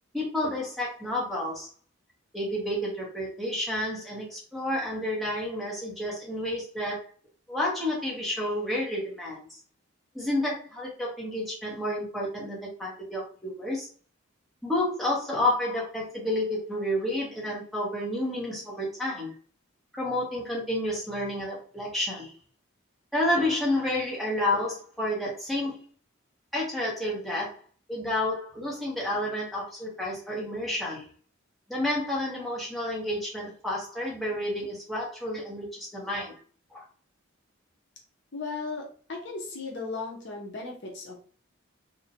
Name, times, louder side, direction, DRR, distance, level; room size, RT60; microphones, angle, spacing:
voice 1, 0.1-1.7 2.3-7.0 7.5-9.5 10.1-13.9 14.6-19.3 19.9-22.3 23.1-25.8 26.5-27.6 27.9-31.1 31.7-36.4 36.7-36.8, left 1 dB, ahead, -6 dB, 0.8 m, -30 dB
voice 2, 38.3-41.2, left 3 dB, 55° left, 0 dB, 0.6 m, -36 dB
2.5 x 2.1 x 2.7 m, 0.42 s
head